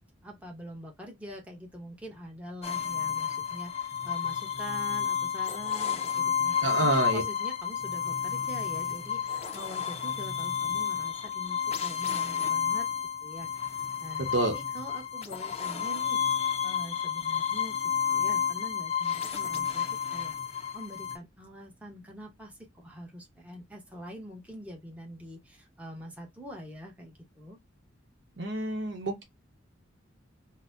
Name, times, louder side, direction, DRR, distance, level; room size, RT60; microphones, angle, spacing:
voice 1, 0.2-12.9 13.2-14.2 14.5-16.2 16.6-17.8 18.1-27.6, equal, 5° right, 1.0 m, -44 dB
sound 1, 2.6-21.2, left 8 dB, 35° left, 0.6 m, -31 dB
voice 2, 6.6-7.2 14.3-14.5 28.4-29.2, right 2 dB, 65° right, 0.9 m, -28 dB
4.0 x 2.1 x 2.5 m
head